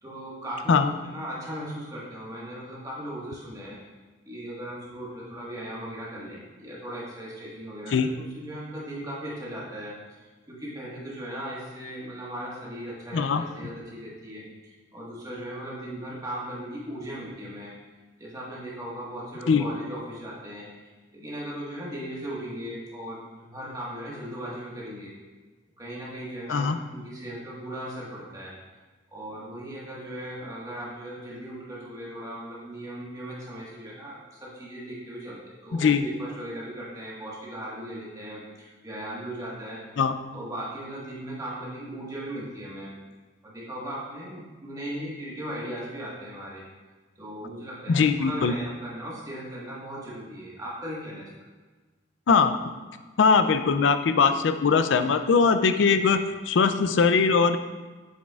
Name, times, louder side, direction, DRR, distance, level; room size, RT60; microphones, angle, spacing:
voice 1, 0.0-3.7 4.2-9.9 10.2-17.7 18.2-20.7 21.1-25.1 25.8-28.5 29.1-39.8 40.3-42.9 43.4-46.6 47.2-51.3, right 1 dB, 20° right, -6 dB, 1.5 m, -38 dB
voice 2, 47.9-48.5 52.3-52.6 53.2-57.6, left 5 dB, 65° left, 9 dB, 0.4 m, -21 dB
7.4 x 6.2 x 2.4 m, 1.3 s
head